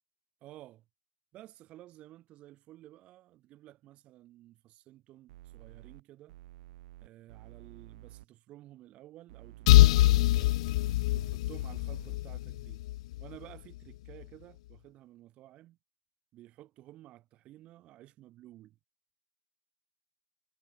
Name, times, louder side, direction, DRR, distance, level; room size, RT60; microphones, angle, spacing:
voice 1, 0.4-0.8 1.3-6.4 7.0-10.5 11.1-12.8 13.2-15.8 16.3-18.8, right 15 dB, 25° right, 5.7 m, -53 dB
sound 1, 5.3-6.0 6.3-8.3 9.3-11.3 11.6-12.2, right 16 dB, 45° right, 2.9 m, -51 dB
sound 2, 9.7-13.3, left 16 dB, 45° left, 0.8 m, -24 dB
hypercardioid pair, 125°, 5 cm